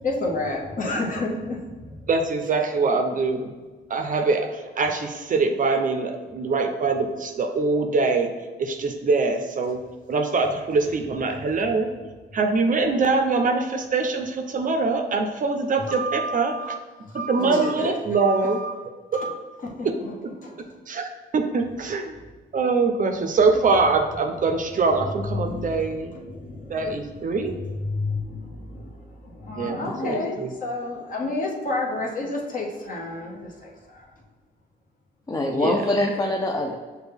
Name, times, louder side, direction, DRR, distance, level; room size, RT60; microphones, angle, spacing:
voice 1, 0.0-2.0 2.7-2.8 15.8-16.8 17.1-18.7 19.1-19.3 19.6-20.1 20.4-20.6 25.3-34.1, left 2 dB, 45° left, -1 dB, 1.0 m, -31 dB
voice 2, 2.1-3.5 3.9-8.3 8.6-9.8 10.1-11.9 12.3-16.5 17.3-18.6 19.8-19.9 20.9-21.1 21.3-22.2 22.5-26.1 26.7-27.6 29.6-30.5 35.5-35.8, right 4 dB, 45° right, 5 dB, 0.5 m, -23 dB
voice 3, 17.4-17.8 29.6-30.2 35.3-36.7, left 2 dB, 15° left, 1 dB, 0.4 m, -26 dB
6.1 x 2.2 x 3.4 m, 1.3 s
cardioid pair, 90°, 20 cm